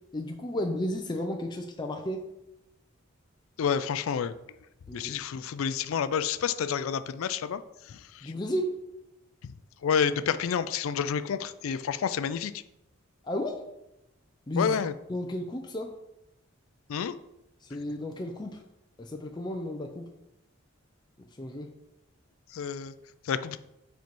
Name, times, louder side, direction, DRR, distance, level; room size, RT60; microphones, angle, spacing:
voice 1, 0.1-2.2 4.9-5.2 8.2-8.8 13.2-13.5 14.5-14.8 15.1-15.9 17.6-18.6 19.0-20.1 21.2-21.7, left 1 dB, 20° left, 3 dB, 0.4 m, -33 dB
voice 2, 3.6-4.3 4.9-7.6 7.9-8.3 9.8-12.5 14.6-14.9 16.9-17.1 22.5-22.9 23.3-23.6, left 7 dB, 80° left, 13 dB, 0.4 m, -29 dB
5.2 x 4.5 x 5.3 m, 0.90 s
head